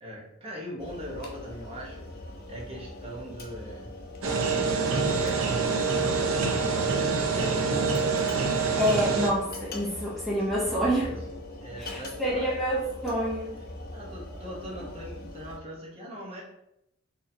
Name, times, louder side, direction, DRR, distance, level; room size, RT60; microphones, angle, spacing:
voice 1, 0.0-2.0 2.5-3.9 4.5-7.0 10.3-11.2 11.6-12.5 13.9-16.4, equal, 30° right, -4 dB, 1.0 m, -41 dB
sound 1, 0.8-15.6, left 1 dB, 50° left, 0.7 m, -41 dB
sound 2, 4.2-9.3, right 4 dB, 85° right, 0.6 m, -26 dB
voice 2, 8.7-11.1 11.8-13.6, equal, ahead, -7 dB, 0.6 m, -27 dB
4.1 x 3.0 x 2.7 m, 0.80 s
head